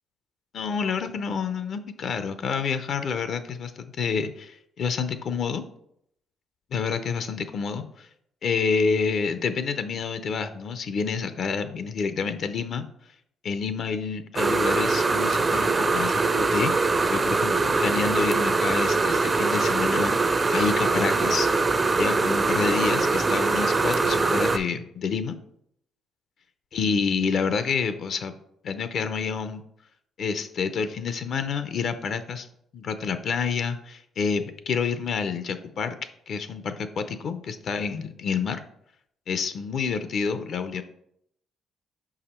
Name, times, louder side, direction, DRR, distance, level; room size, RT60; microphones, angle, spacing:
voice 1, 0.5-5.6 6.7-8.1 8.4-12.9 13.4-21.5 21.9-25.4 26.7-28.3 28.6-29.6 30.2-32.5 32.7-36.0 36.3-38.6 39.3-40.8, left 5 dB, 60° left, 10 dB, 0.5 m, -28 dB
sound 1, 14.4-24.6, right 3 dB, 30° right, 0.4 m, -23 dB
5.2 x 4.8 x 4.3 m, 0.74 s
cardioid pair, 90°, 0 cm